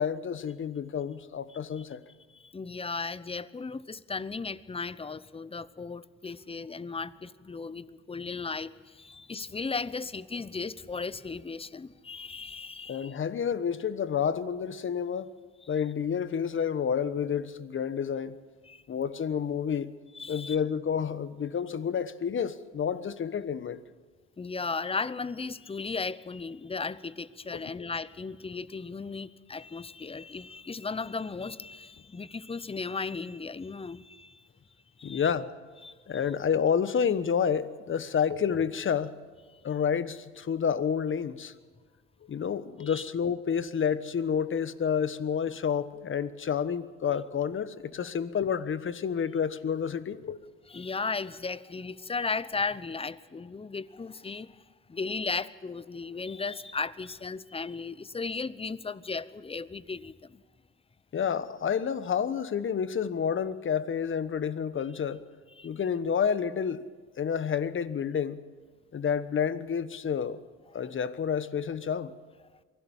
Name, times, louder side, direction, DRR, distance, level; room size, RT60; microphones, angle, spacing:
voice 1, 0.0-2.0 12.9-15.3 15.7-18.4 18.9-19.9 20.3-23.8 27.5-27.6 35.0-35.5 36.1-39.1 39.6-41.5 42.3-50.4 61.1-65.2 65.6-66.8 67.2-68.4 68.9-70.4 70.7-72.1, left 7 dB, 40° left, 14 dB, 1.3 m, -29 dB
voice 2, 2.3-13.2 18.7-18.8 20.1-20.6 24.4-34.4 35.0-35.3 35.8-35.9 42.8-43.0 50.7-54.6 54.9-60.4 65.6-65.7, left 4 dB, 20° left, 17 dB, 0.9 m, -36 dB
23.5 x 16.5 x 7.3 m, 1.4 s
supercardioid pair, 70°, 31 cm